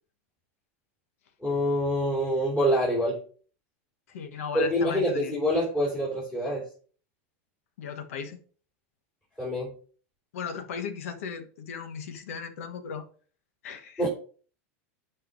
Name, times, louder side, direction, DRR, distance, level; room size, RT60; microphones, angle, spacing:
voice 1, 1.4-3.2 4.5-6.6 9.4-9.7 14.0-14.1, equal, 15° left, 3.4 m, -26 dB
voice 2, 4.1-5.4 7.8-8.4 10.3-13.1 13.6-14.1, left 6 dB, 80° left, 1.2 m, -36 dB
11.0 x 5.5 x 2.6 m
supercardioid pair, 150°, 7 cm